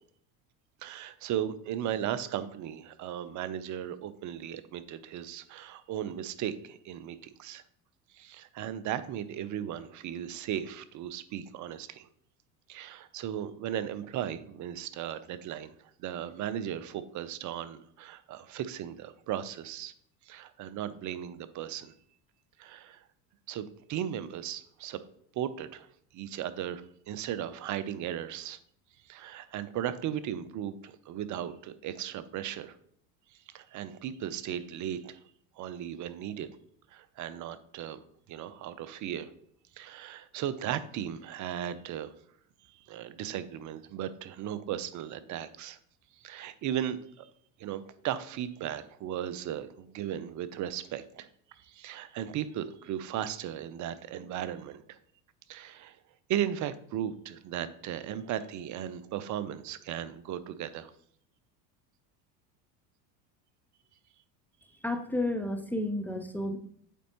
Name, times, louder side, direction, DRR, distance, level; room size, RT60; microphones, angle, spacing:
voice 1, 0.8-7.6 8.1-12.1 12.7-15.7 16.0-19.9 20.2-21.9 22.6-23.0 23.5-25.0 25.3-25.9 26.1-28.6 29.0-32.8 33.5-35.2 35.6-36.5 36.9-38.0 38.3-39.3 39.8-42.1 42.6-45.8 46.1-47.3 47.6-51.3 51.6-55.0 55.5-56.0 56.3-60.9, right 10 dB, 40° right, 14 dB, 0.6 m, -36 dB
voice 2, 64.8-66.6, left 1 dB, 5° left, 5 dB, 0.3 m, -31 dB
8.2 x 4.3 x 2.9 m, 0.64 s
hypercardioid pair, 85°, 48 cm